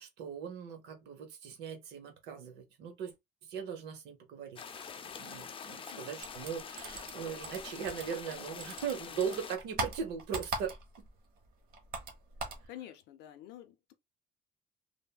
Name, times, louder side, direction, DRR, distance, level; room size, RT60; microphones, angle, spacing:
voice 1, 0.0-3.1 3.5-10.7, right 7 dB, 90° right, 0.8 m, -39 dB
sound 1, 4.6-9.6, left 6 dB, 30° left, 0.4 m, -45 dB
voice 2, 5.9-6.2 12.7-13.9, left 12 dB, 85° left, 0.5 m, -49 dB
sound 2, 6.2-8.3 8.6-11.1 11.4-12.7, right 3 dB, 60° right, 1.0 m, -39 dB
3.3 x 2.1 x 2.2 m
cardioid pair, 110°, 17 cm